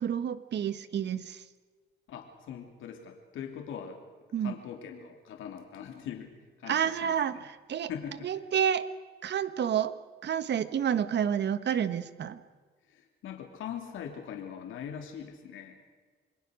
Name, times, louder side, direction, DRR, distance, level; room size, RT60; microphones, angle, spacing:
voice 1, 0.0-1.4 4.3-4.5 6.7-7.9 8.2-8.9 9.2-10.0 10.2-12.4, right 8 dB, 60° right, 13 dB, 1.5 m, -29 dB
voice 2, 2.1-4.0 4.4-7.5 7.9-8.3 12.9-15.9, left 8 dB, 80° left, 3 dB, 3.1 m, -42 dB
28.0 x 21.5 x 6.5 m, 1.5 s
cardioid pair, 90°, 20 cm